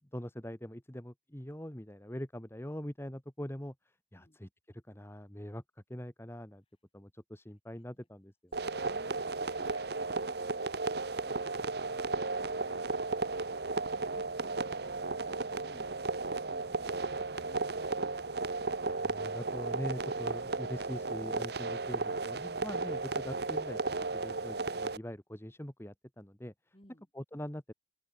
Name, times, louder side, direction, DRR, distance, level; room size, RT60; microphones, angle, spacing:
voice 1, 0.0-3.7 4.1-5.6 5.9-6.6 6.9-8.5 18.9-26.5 27.1-27.7, equal, 15° left, 1.8 m, -43 dB
sound 1, 8.5-25.0, right 3 dB, 65° right, 1.3 m, -34 dB
voice 2, 8.6-13.6 14.0-18.1 26.7-27.1, left 1 dB, 30° left, 5.4 m, -61 dB
head